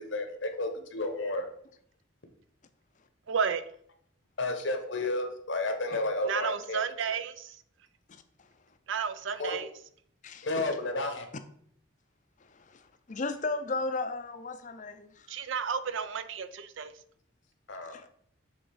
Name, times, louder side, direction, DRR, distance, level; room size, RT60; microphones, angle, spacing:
voice 1, 0.0-1.5 4.4-6.8 9.4-9.6 10.4-11.2 17.7-18.0, left 2 dB, 65° left, 1.0 m, -32 dB
voice 2, 3.3-3.6 6.2-7.6 8.9-9.7 15.3-16.9, right 6 dB, 70° right, 0.5 m, -32 dB
voice 3, 10.2-10.7 12.5-15.3 17.9-18.0, left 3 dB, 40° left, 0.5 m, -35 dB
6.4 x 3.8 x 4.6 m
head